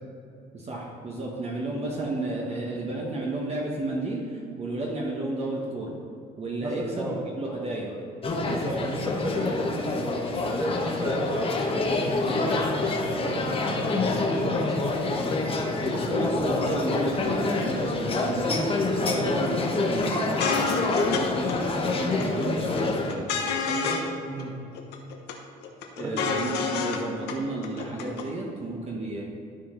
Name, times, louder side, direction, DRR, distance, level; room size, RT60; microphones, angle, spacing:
voice 1, 0.5-5.9 6.4-8.0 9.3-9.6 13.6-13.9 15.8-23.3 23.6-24.0 26.0-29.2, right 2 dB, 40° right, -2 dB, 1.2 m, -32 dB
voice 2, 6.6-7.2 8.4-12.7 13.1-16.2 19.0-19.3 24.3-24.5 26.0-26.4, right 1 dB, 20° right, -1 dB, 1.4 m, -34 dB
sound 1, 8.2-23.1, left 3 dB, 35° left, 1.0 m, -27 dB
sound 2, 20.0-20.1 20.4-21.2 21.5-21.6 21.8-22.5 22.8-24.1 24.4-24.5 24.7-25.3 25.6-27.0 27.3-27.4 27.6-28.2, left 5 dB, 85° left, 1.0 m, -29 dB
12.5 x 4.4 x 3.9 m, 2.5 s
cardioid pair, 110°, 17 cm